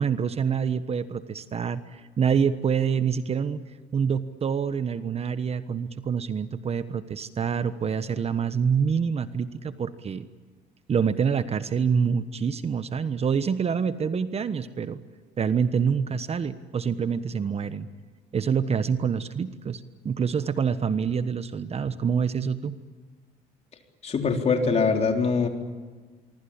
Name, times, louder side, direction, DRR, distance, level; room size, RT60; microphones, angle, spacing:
voice 1, 0.0-3.6 3.9-10.2 10.9-15.0 15.4-17.9 18.3-22.8, right 6 dB, 35° right, 12 dB, 1.2 m, -26 dB
voice 2, 24.0-25.5, left 4 dB, 40° left, 4 dB, 3.9 m, -23 dB
25.5 x 24.5 x 8.8 m, 1.4 s
cardioid pair, 110°, 17 cm